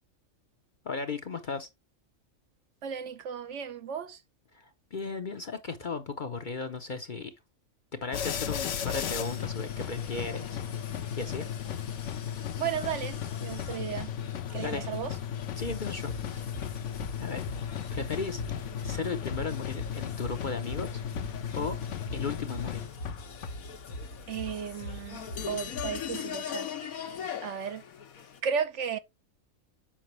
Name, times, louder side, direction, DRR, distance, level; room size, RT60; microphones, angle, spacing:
voice 1, 0.8-1.7 4.5-7.3 7.9-10.6 11.2-11.5 14.6-14.9 15.6-16.4 17.2-18.4 18.8-21.0 21.5-21.8 22.1-22.8, left 4 dB, 45° left, 0.7 m, -36 dB
voice 2, 2.8-4.2 12.6-14.1 14.5-15.1 24.3-26.7 27.4-27.8 28.4-29.0, right 7 dB, 65° right, 1.0 m, -34 dB
sound 1, 8.1-23.5, left 9 dB, 65° left, 1.0 m, -35 dB
sound 2, 8.9-28.4, left 4 dB, 85° left, 1.5 m, -41 dB
7.3 x 5.1 x 3.0 m
omnidirectional pair, 1.4 m